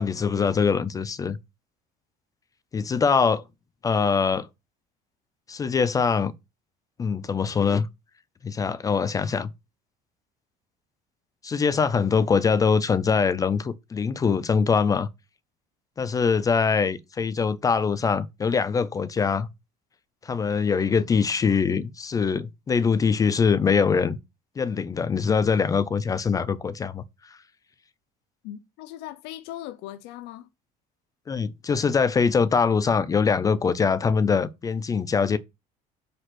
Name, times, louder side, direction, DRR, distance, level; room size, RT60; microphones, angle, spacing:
voice 1, 0.0-1.4 2.7-3.4 3.8-4.5 5.5-6.3 7.0-7.9 8.4-9.5 11.4-15.1 16.0-19.5 20.2-24.2 24.6-27.4 31.3-35.4, left 5 dB, 20° left, 0.4 m, -23 dB
voice 2, 28.4-30.5, left 13 dB, 80° left, 0.7 m, -39 dB
5.9 x 5.2 x 6.2 m
cardioid pair, 155°, 17 cm